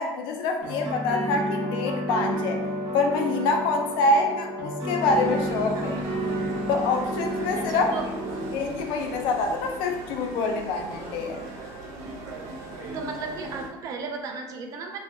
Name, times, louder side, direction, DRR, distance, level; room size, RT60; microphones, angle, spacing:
voice 1, 0.0-2.6 2.9-6.0 6.7-7.9 8.5-11.4, left 3 dB, 60° left, 3 dB, 0.4 m, -26 dB
sound 1, 0.6-8.5, right 1 dB, 55° right, 0.9 m, -31 dB
sound 2, 5.0-13.7, right 2 dB, 80° right, 0.6 m, -38 dB
voice 2, 7.6-8.0 12.9-15.0, right 4 dB, 40° right, 3 dB, 0.4 m, -35 dB
3.3 x 2.2 x 3.0 m, 1.1 s
cardioid pair, 165°, 9 cm